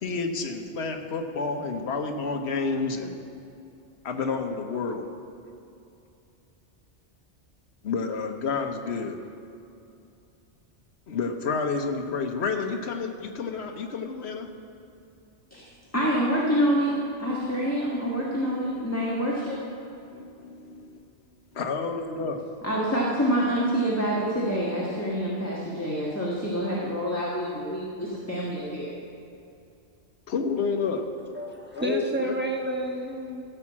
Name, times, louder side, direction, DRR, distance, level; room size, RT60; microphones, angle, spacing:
voice 1, 0.0-3.2 4.0-5.0 7.8-9.2 11.1-14.5 20.1-21.0 21.5-22.4 30.3-31.1 31.7-32.4, left 4 dB, 70° left, 4 dB, 1.2 m, -30 dB
voice 2, 15.5-19.6 22.6-28.9, equal, 15° left, -6 dB, 1.5 m, -27 dB
voice 3, 31.3-33.4, right 1 dB, 10° right, 0 dB, 1.2 m, -30 dB
15.5 x 5.6 x 7.3 m, 2.7 s
omnidirectional pair, 1.2 m